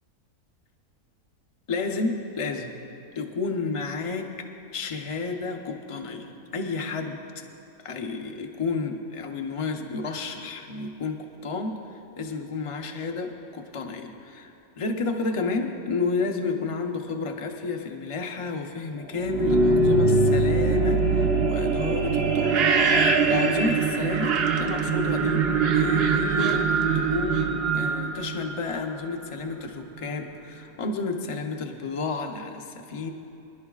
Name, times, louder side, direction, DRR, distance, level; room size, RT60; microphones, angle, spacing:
voice 1, 1.7-2.8 3.1-7.4 7.8-11.8 12.2-22.5 22.8-25.5 25.7-26.7 26.9-33.1, left 4 dB, 30° left, 4 dB, 0.6 m, -31 dB
sound 1, 19.2-29.0, right 4 dB, 55° right, 0.7 m, -22 dB
24.5 x 11.0 x 2.4 m, 2.9 s
omnidirectional pair, 1.6 m